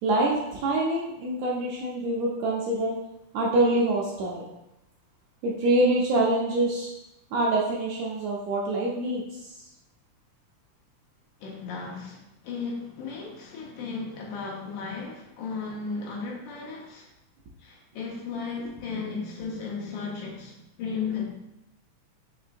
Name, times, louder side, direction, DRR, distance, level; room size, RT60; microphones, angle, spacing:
voice 1, 0.0-2.9 3.3-4.5 5.4-6.9 7.3-9.5, right 2 dB, 80° right, -3 dB, 1.6 m, -25 dB
voice 2, 11.4-17.1 17.6-21.2, left 5 dB, 80° left, -1 dB, 2.2 m, -35 dB
5.4 x 3.0 x 2.5 m, 0.89 s
omnidirectional pair, 3.5 m